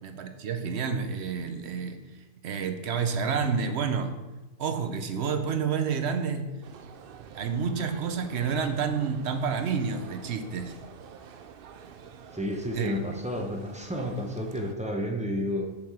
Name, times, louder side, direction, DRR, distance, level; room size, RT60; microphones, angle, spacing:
voice 1, 0.0-2.0 2.4-4.1 4.6-6.5 7.3-10.7 12.7-12.9, right 6 dB, 55° right, 7 dB, 0.8 m, -29 dB
sound 1, 6.6-14.7, right 7 dB, 80° right, 0.5 m, -48 dB
voice 2, 12.3-15.7, left 1 dB, 10° right, 1 dB, 0.3 m, -31 dB
7.3 x 4.6 x 4.9 m, 1.1 s
omnidirectional pair, 1.5 m